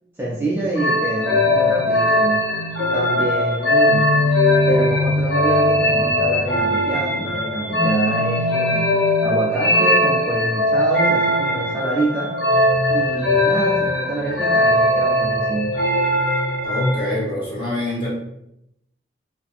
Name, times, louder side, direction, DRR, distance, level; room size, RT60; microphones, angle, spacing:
voice 1, 0.2-2.5 2.9-4.1 4.6-8.9 9.2-12.3 12.9-15.8, right 2 dB, 10° right, -6 dB, 0.4 m, -26 dB
sound 1, 0.8-17.2, left 1 dB, 75° left, 1.0 m, -19 dB
voice 2, 16.6-18.1, left 1 dB, 30° left, -7 dB, 1.1 m, -24 dB
2.6 x 2.4 x 2.5 m, 0.82 s
head